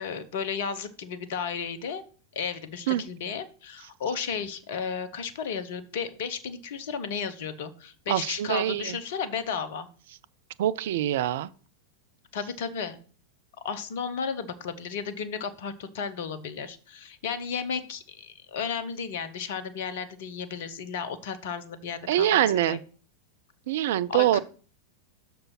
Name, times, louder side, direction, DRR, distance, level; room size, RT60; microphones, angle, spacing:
voice 1, 0.0-2.0 2.3-9.9 12.3-13.0 13.6-22.8 24.1-24.4, left 6 dB, 55° left, 0.9 m, -33 dB
voice 2, 8.1-9.0 10.6-11.5 22.1-22.8 23.7-24.4, right 12 dB, 55° right, 0.4 m, -24 dB
6.2 x 4.6 x 6.0 m
figure-of-eight pair, 90°, 0 cm